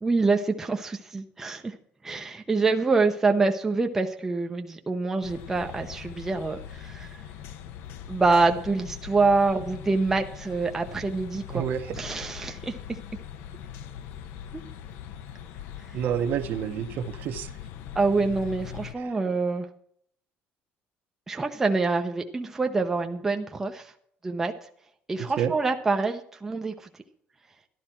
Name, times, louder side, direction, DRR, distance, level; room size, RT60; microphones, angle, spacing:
voice 1, 0.0-1.7 2.0-7.1 8.1-11.6 11.9-12.7 18.0-19.7 21.3-23.9 24.2-24.5 25.1-26.7, right 3 dB, 10° right, 4 dB, 0.7 m, -26 dB
sound 1, 5.2-18.9, left 9 dB, 65° left, 0.9 m, -41 dB
voice 2, 11.5-12.0 15.9-17.5 19.0-19.1 25.4-25.5, right 9 dB, 50° right, 9 dB, 1.0 m, -29 dB
12.0 x 12.0 x 4.4 m, 0.65 s
cardioid pair, 175°, 4 cm